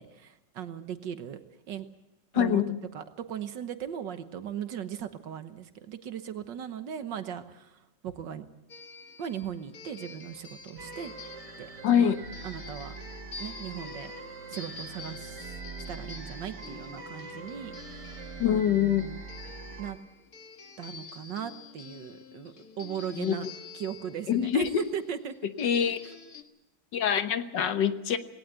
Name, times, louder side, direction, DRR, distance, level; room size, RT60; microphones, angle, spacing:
voice 1, 0.0-1.4 1.7-1.9 2.3-2.6 2.9-8.5 9.2-11.1 11.6-11.7 12.0-12.1 12.4-12.9 13.4-14.1 14.5-15.5 15.9-18.1 18.5-19.3 19.8-20.0 20.8-23.5 23.7-25.4, right 9 dB, 85° right, 10 dB, 1.9 m, -38 dB
voice 2, 2.3-2.8 11.8-12.2 18.4-19.0 23.1-23.4 24.3-24.8 25.6-26.0 26.9-28.2, left 8 dB, 80° left, 10 dB, 1.8 m, -25 dB
sound 1, 8.7-26.4, left 5 dB, 55° left, 1.8 m, -47 dB
sound 2, 10.8-19.9, right 4 dB, 70° right, 2.3 m, -43 dB
19.5 x 18.0 x 8.2 m, 0.94 s
omnidirectional pair, 1.9 m